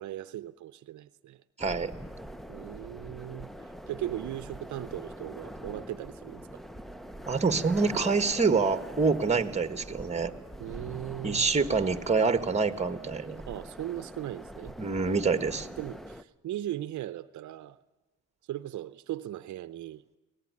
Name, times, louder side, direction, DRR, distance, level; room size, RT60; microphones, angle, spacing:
voice 1, 0.0-1.4 2.5-6.6 10.6-11.5 13.5-14.7 15.8-17.8 18.5-20.0, right 13 dB, 70° right, 0.7 m, -38 dB
sound 1, 1.6-16.2, equal, ahead, 0.8 m, -43 dB
voice 2, 1.6-1.9 7.3-10.3 11.2-13.4 14.8-15.7, right 4 dB, 20° right, 1.7 m, -26 dB
23.5 x 18.5 x 9.7 m
cardioid pair, 90°, 30 cm